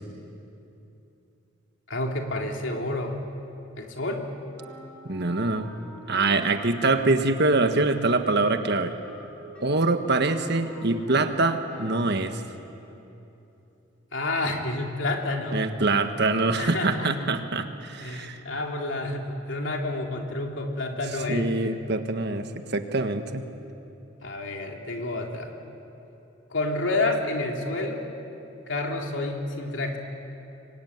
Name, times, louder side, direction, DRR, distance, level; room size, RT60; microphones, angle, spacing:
voice 1, 1.9-3.2 3.8-4.3 14.1-15.6 16.6-17.1 18.0-21.6 24.2-25.5 26.5-28.1 28.7-30.0, left 2 dB, 65° left, 1 dB, 3.2 m, -29 dB
Wind instrument woodwind instrument, 4.6-11.3 11.7-12.1, equal, 5° left, 6.8 m, -46 dB
voice 2, 5.0-5.7 6.1-8.9 9.6-12.4 15.5-18.4 21.3-23.4, right 3 dB, 55° right, 7 dB, 1.5 m, -24 dB
26.5 x 23.0 x 9.6 m, 2.9 s
head